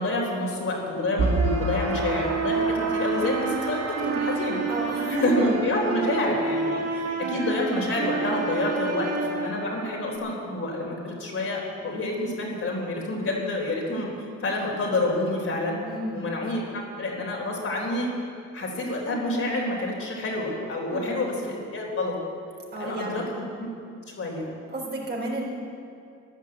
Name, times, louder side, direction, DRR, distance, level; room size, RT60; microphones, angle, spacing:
voice 1, 0.0-4.6 5.1-15.8 16.1-18.1 18.5-22.1 22.8-23.7 24.2-24.5, left 2 dB, 50° left, -2 dB, 4.1 m, -28 dB
sound 1, 1.2-10.2, right 4 dB, 55° right, 2.3 m, -28 dB
voice 2, 4.7-5.2 15.8-16.2 20.9-21.2 22.7-23.3 24.7-25.5, right 1 dB, 35° right, -2 dB, 4.3 m, -33 dB
14.0 x 10.5 x 8.1 m, 2.5 s
cardioid pair, 90°, 30 cm